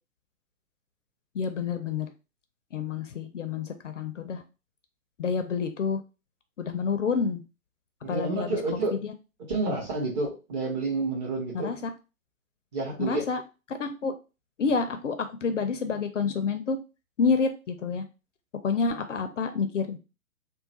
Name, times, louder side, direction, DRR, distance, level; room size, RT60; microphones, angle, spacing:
voice 1, 1.3-2.1 2.7-4.4 5.2-6.0 6.6-7.4 8.1-9.1 11.5-11.9 13.0-13.4 13.8-14.1 14.6-16.8 17.2-18.0 18.6-20.0, left 5 dB, 55° left, 8 dB, 0.5 m, -28 dB
voice 2, 8.0-9.0 9.5-11.8 12.7-13.3, right 3 dB, 30° right, -4 dB, 1.2 m, -29 dB
3.0 x 2.1 x 2.8 m, 0.30 s
figure-of-eight pair, 130°, 44 cm